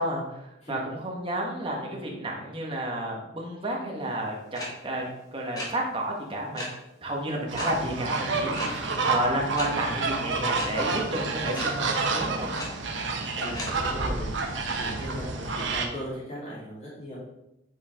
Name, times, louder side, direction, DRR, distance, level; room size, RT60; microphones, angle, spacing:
voice 1, 0.0-5.0 5.3-6.6 7.0-12.6, right 1 dB, 30° right, -2 dB, 1.5 m, -31 dB
sound 1, 4.6-4.7 5.6-5.7 6.6-6.7 7.6-7.7 8.5-8.7 9.6-9.7 10.5-10.7 11.6-11.7 12.6-12.7 13.6-13.7, left 1 dB, 20° left, 1.3 m, -34 dB
sound 2, 7.5-15.9, right 3 dB, 75° right, 0.9 m, -29 dB
voice 2, 13.4-17.2, equal, 35° left, -8 dB, 2.7 m, -38 dB
8.2 x 4.8 x 3.7 m, 0.87 s
head